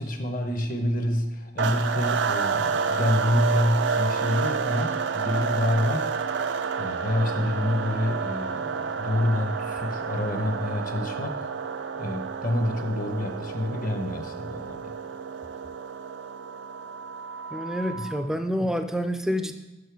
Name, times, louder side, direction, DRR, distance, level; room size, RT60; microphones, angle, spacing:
voice 1, 0.0-6.1 6.8-11.5 11.9-14.9 17.9-18.0 18.6-18.7, left 1 dB, 45° left, 5 dB, 0.9 m, -27 dB
sound 1, 1.6-18.3, right 5 dB, 70° right, 0.4 m, -30 dB
voice 2, 17.5-19.6, equal, 5° right, 7 dB, 0.4 m, -28 dB
6.5 x 6.3 x 4.6 m, 1.1 s
head